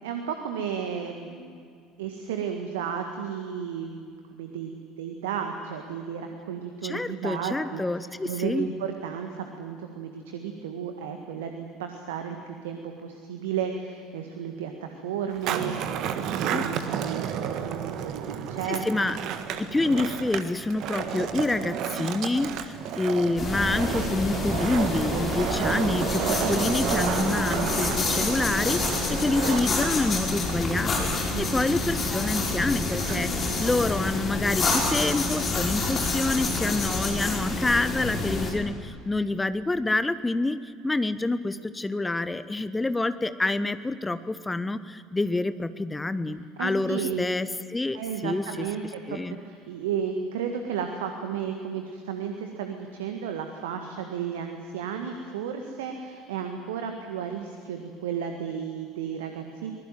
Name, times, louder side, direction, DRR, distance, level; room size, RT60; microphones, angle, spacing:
voice 1, 0.0-1.6 2.0-7.8 8.2-19.1 31.3-31.5 33.1-33.2 46.6-47.2 47.9-59.7, right 7 dB, 65° right, 5 dB, 1.7 m, -33 dB
voice 2, 6.8-8.7 16.5-16.6 18.7-19.2 19.6-48.7 49.1-49.4, left 2 dB, 15° left, 14 dB, 1.0 m, -27 dB
Skateboard, 15.3-34.0, right 8 dB, 50° right, 1.7 m, -32 dB
sound 1, 23.4-38.5, left 3 dB, 30° left, 5.5 m, -28 dB
24.5 x 20.0 x 9.2 m, 2.2 s
figure-of-eight pair, 60°, 0 cm